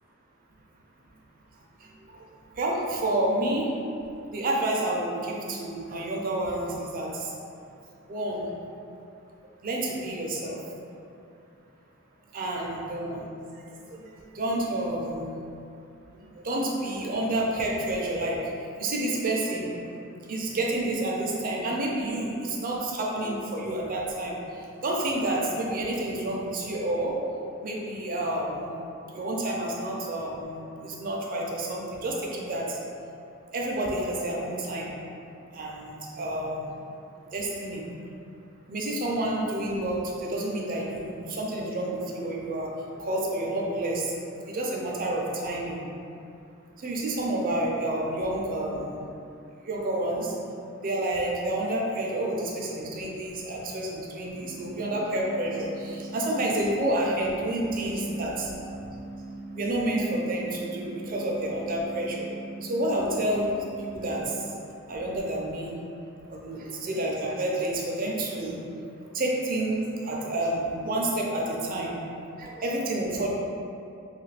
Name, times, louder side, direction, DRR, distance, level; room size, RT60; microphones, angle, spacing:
voice 1, 1.8-3.7 4.3-7.4 8.1-8.5 9.6-10.6 12.3-15.3 16.1-19.8 20.3-27.2 27.6-28.8 29.1-32.8 33.5-34.9 35.2-36.7 37.3-37.9 38.7-44.2 44.5-45.9 46.8-49.0 49.6-50.4 50.7-58.5 59.5-62.3 62.6-63.5 63.8-64.5 64.9-65.8 66.3-68.7 69.1-72.0 72.4-73.3, right 1 dB, 40° right, -2 dB, 0.4 m, -29 dB
sound 1, 54.4-64.4, right 2 dB, 65° left, 0.8 m, -40 dB
3.0 x 2.4 x 3.2 m, 2.6 s
head